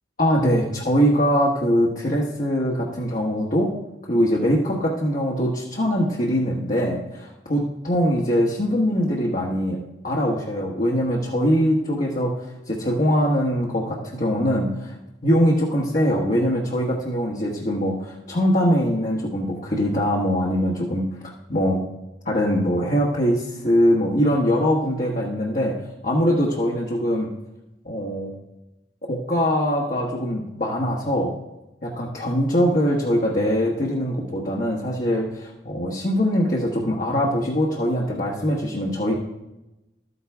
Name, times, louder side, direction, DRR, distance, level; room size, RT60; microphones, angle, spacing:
voice 1, 0.2-3.7 4.0-9.8 10.0-14.9 15.2-21.1 21.5-21.8 22.2-25.7 26.0-27.3 27.8-28.3 29.1-31.3 31.8-39.1, equal, 45° left, -3 dB, 1.3 m, -22 dB
13.0 x 9.4 x 3.5 m, 0.97 s
head